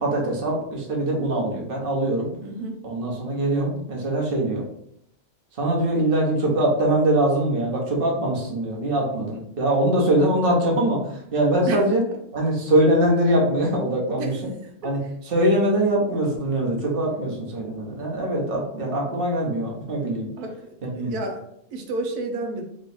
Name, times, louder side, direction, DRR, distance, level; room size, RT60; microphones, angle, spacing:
voice 1, 0.0-2.3 2.8-4.6 5.6-12.0 12.3-14.5 14.8-15.0 15.3-20.3 20.9-21.1, right 1 dB, 40° right, -2 dB, 1.1 m, -22 dB
voice 2, 2.4-2.8 11.7-11.8 14.2-14.3 20.4-20.5 21.0-21.4 21.7-22.6, right 2 dB, 85° right, 3 dB, 1.2 m, -30 dB
3.1 x 3.0 x 4.2 m, 0.73 s
omnidirectional pair, 1.6 m